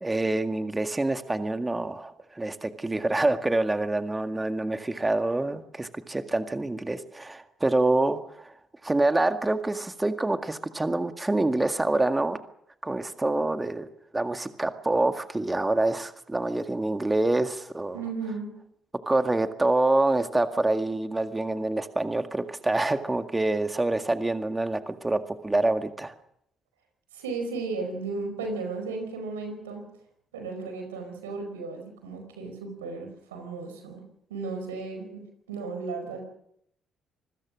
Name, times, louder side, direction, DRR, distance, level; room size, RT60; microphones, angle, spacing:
voice 1, 0.0-8.5 8.8-12.4 12.8-13.9 14.1-18.0 19.1-26.2, right 2 dB, 20° right, 7 dB, 1.9 m, -26 dB
voice 2, 17.9-18.5 27.1-29.8 30.3-34.0 34.3-35.2 35.5-36.2, right 4 dB, 85° right, 5 dB, 4.9 m, -34 dB
26.5 x 21.0 x 6.3 m, 0.74 s
hypercardioid pair, 45°, 0 cm